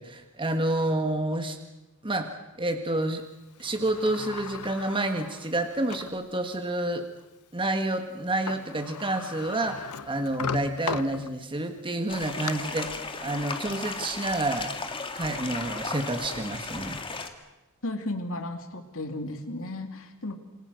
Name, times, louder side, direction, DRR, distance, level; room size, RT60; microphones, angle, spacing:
voice 1, 0.0-1.6 2.0-3.2 3.6-7.0 7.5-14.8 15.1-17.0, right 1 dB, 25° right, 6 dB, 1.7 m, -29 dB
Sliding door, 3.6-6.2 6.8-6.9 8.2-8.3 8.5-11.6 12.1-12.5, left 5 dB, 80° left, 0.9 m, -37 dB
sound 1, 12.1-17.3, left 3 dB, 25° left, 2.1 m, -35 dB
voice 2, 17.8-20.4, left 1 dB, 65° left, 6 dB, 2.8 m, -34 dB
27.5 x 26.0 x 6.5 m, 1.0 s
head